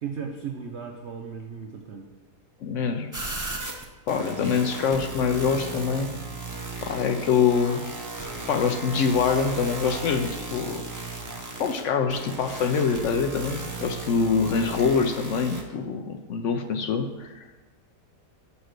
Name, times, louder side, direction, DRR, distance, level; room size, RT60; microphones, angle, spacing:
voice 1, 0.0-2.1, right 6 dB, 65° right, 2 dB, 0.7 m, -36 dB
voice 2, 2.6-3.1 4.1-6.1 6.8-7.9 8.5-10.9 11.6-17.5, left 6 dB, 75° left, 6 dB, 0.7 m, -25 dB
sound 1, 3.1-15.6, right 2 dB, 25° right, 0.4 m, -36 dB
6.3 x 5.1 x 6.5 m, 1.2 s
omnidirectional pair, 1.8 m